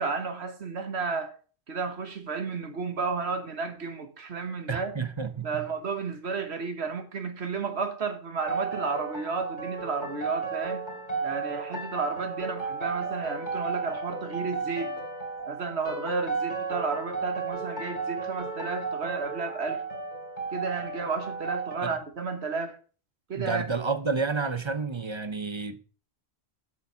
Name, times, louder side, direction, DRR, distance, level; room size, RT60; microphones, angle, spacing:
voice 1, 0.0-1.3 1.7-4.9 5.4-10.9 11.2-15.0 15.4-19.8 20.5-22.8 23.3-23.6, right 4 dB, 80° right, 1.5 m, -32 dB
voice 2, 4.7-5.7 21.8-21.9 23.4-25.8, right 4 dB, 30° right, 0.8 m, -30 dB
sound 1, 8.4-21.8, right 4 dB, 45° left, 3.4 m, -34 dB
8.3 x 6.9 x 6.9 m
omnidirectional pair, 1.1 m